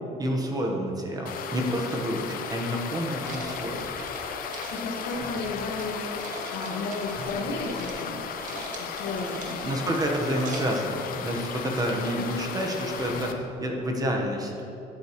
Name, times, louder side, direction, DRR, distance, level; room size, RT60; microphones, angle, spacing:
voice 1, 0.2-3.9 9.5-14.6, equal, 20° right, 1 dB, 1.2 m, -29 dB
sound 1, 1.3-13.3, left 7 dB, 55° left, 0.7 m, -35 dB
sound 2, 3.2-13.7, equal, 20° left, 2.3 m, -45 dB
sound 3, 3.2-5.9 6.2-7.4 7.7-8.0 8.3-9.8 10.2-10.9, right 3 dB, 50° right, 1.6 m, -41 dB
voice 2, 4.7-8.2 8.5-9.7 12.2-12.5, left 3 dB, 80° left, -2 dB, 2.0 m, -34 dB
13.5 x 8.5 x 3.1 m, 2.9 s
cardioid pair, 130°, 17 cm